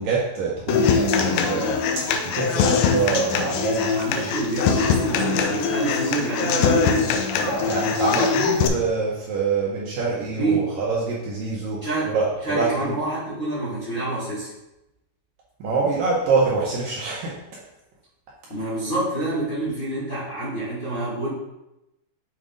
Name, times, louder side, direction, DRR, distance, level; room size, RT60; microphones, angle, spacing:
voice 1, 0.0-1.8 2.3-4.3 7.4-12.7 15.6-17.3, right 4 dB, 70° right, -4 dB, 2.2 m, -25 dB
Human voice / Acoustic guitar, 0.7-8.7, left 5 dB, 80° left, 2.2 m, -22 dB
voice 2, 3.9-7.2 10.4-10.7 11.8-14.5 18.5-21.3, right 2 dB, 40° left, -10 dB, 1.7 m, -27 dB
7.6 x 4.6 x 3.8 m, 0.92 s
omnidirectional pair, 4.8 m